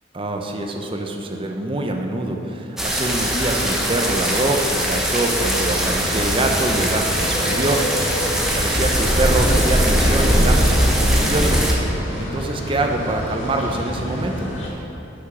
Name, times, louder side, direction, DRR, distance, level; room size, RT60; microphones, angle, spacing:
voice 1, 0.1-8.0 8.6-11.6 12.2-14.5, right 2 dB, 30° right, 3 dB, 0.6 m, -24 dB
sound 1, 2.8-11.7, equal, 5° right, 0.9 m, -20 dB
sound 2, 5.6-14.7, equal, 90° left, 1.7 m, -29 dB
6.2 x 5.9 x 6.1 m, 3.0 s
head